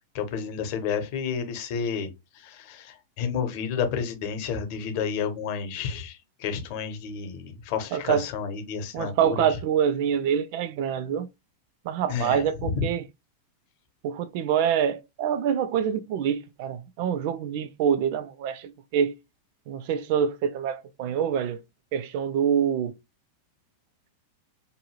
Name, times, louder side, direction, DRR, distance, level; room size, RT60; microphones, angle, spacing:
voice 1, 0.1-9.4 12.1-12.9, left 6 dB, 45° left, 0.8 m, -31 dB
voice 2, 7.9-8.2 8.9-11.3 11.8-13.0 14.0-19.1 19.7-21.6 21.9-23.0, right 8 dB, 45° right, 0.4 m, -26 dB
2.6 x 2.3 x 3.1 m
figure-of-eight pair, 90°, 0 cm